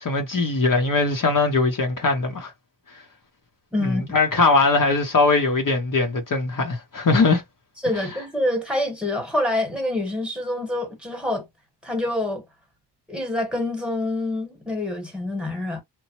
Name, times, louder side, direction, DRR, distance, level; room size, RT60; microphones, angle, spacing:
voice 1, 0.0-2.5 3.8-7.4, left 3 dB, 50° left, 0.8 m, -21 dB
voice 2, 3.7-4.0 7.8-11.5 11.8-12.4 13.1-15.8, left 1 dB, ahead, 1.2 m, -26 dB
3.0 x 2.0 x 2.9 m
wide cardioid pair, 140°, 42 cm